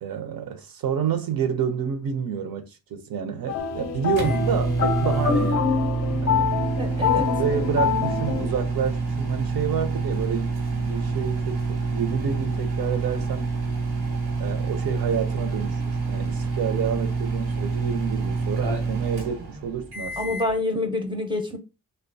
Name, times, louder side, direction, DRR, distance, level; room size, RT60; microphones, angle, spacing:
voice 1, 0.0-5.8 6.2-6.5 7.4-13.5 14.4-20.4, right 7 dB, 70° right, 0.6 m, -29 dB
sound 1, 3.5-8.5, left 7 dB, 45° left, 0.4 m, -25 dB
sound 2, 3.6-20.5, right 4 dB, 85° right, 1.0 m, -27 dB
voice 2, 6.8-7.3 20.2-21.6, left 2 dB, 15° right, 0.5 m, -27 dB
2.7 x 2.2 x 2.5 m
cardioid pair, 80°, 37 cm